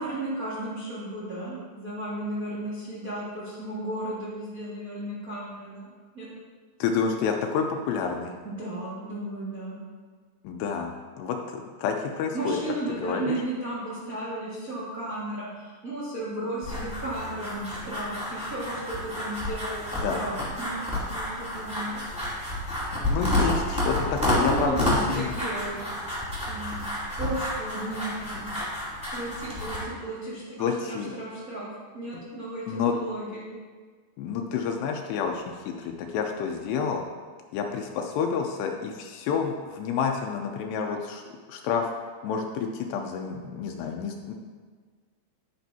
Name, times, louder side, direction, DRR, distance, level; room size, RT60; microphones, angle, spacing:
voice 1, 0.0-5.9 6.1-6.3 8.4-9.8 12.3-20.8 21.1-22.0 24.4-25.8 26.5-26.8 27.2-28.5 29.1-31.7 31.9-33.5, right 1 dB, 50° right, -8 dB, 1.0 m, -34 dB
voice 2, 6.8-8.4 10.4-12.6 12.9-13.4 20.0-20.2 22.9-25.3 30.6-31.1 32.7-32.9 34.2-37.0 37.5-41.2 41.5-41.9 42.2-44.3, left 6 dB, 85° left, 2 dB, 2.7 m, -29 dB
sound 1, 16.6-29.8, left 1 dB, ahead, 1.7 m, -30 dB
10.5 x 10.0 x 2.7 m, 1.5 s
omnidirectional pair, 4.9 m